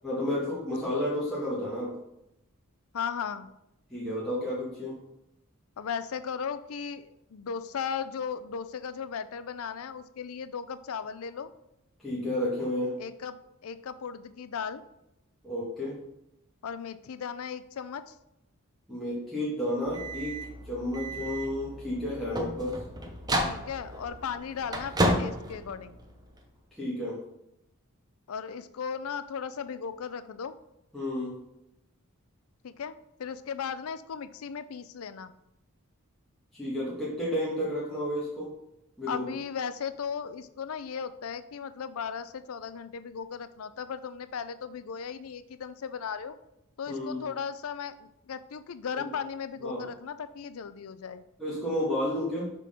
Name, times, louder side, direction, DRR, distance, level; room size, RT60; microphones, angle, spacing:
voice 1, 0.0-2.0 3.9-5.0 12.0-12.9 15.4-16.0 18.9-20.4 20.6-22.8 26.7-27.2 30.9-31.4 36.5-38.5 39.0-39.3 46.9-47.2 49.6-49.8 51.4-52.5, left 1 dB, ahead, -10 dB, 1.6 m, -31 dB
voice 2, 2.9-3.5 5.8-11.5 13.0-14.8 16.6-18.1 23.4-26.0 28.3-30.5 32.6-35.3 39.1-46.4 46.8-51.2, left 6 dB, 75° left, 13 dB, 0.4 m, -36 dB
sound 1, 19.9-26.4, equal, 20° right, 0.8 m, -32 dB
6.6 x 3.8 x 5.0 m, 0.85 s
head